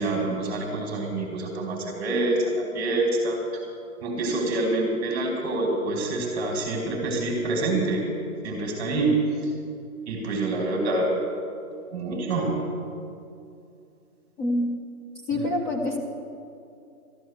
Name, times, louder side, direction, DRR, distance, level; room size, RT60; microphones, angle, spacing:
voice 1, 0.0-3.4 4.0-8.0 8.4-9.2 10.1-11.1 11.9-12.6 15.3-15.4, right 2 dB, 15° right, 0 dB, 2.2 m, -26 dB
voice 2, 14.4-14.7 15.3-16.0, left 1 dB, 30° left, -1 dB, 1.4 m, -26 dB
13.0 x 10.5 x 7.3 m, 2.5 s
hypercardioid pair, 160°, 45 cm